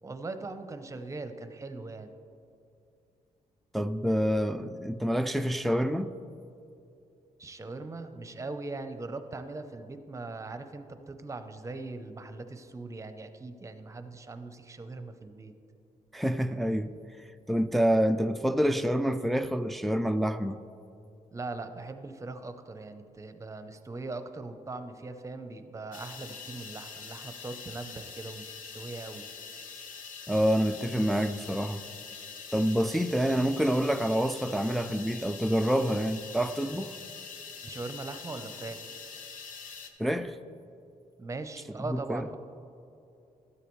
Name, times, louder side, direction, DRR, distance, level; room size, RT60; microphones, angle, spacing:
voice 1, 0.0-2.1 7.4-15.5 21.3-29.3 37.6-38.9 41.2-42.4, right 3 dB, 20° right, 0.7 m, -40 dB
voice 2, 3.7-6.1 16.1-17.0 17.5-20.6 30.3-31.8 32.5-36.9 40.0-40.4 41.9-42.3, equal, ahead, 0.3 m, -27 dB
sound 1, 25.9-39.9, left 5 dB, 80° left, 0.9 m, -44 dB
13.0 x 8.4 x 3.2 m
cardioid pair, 95°, 14 cm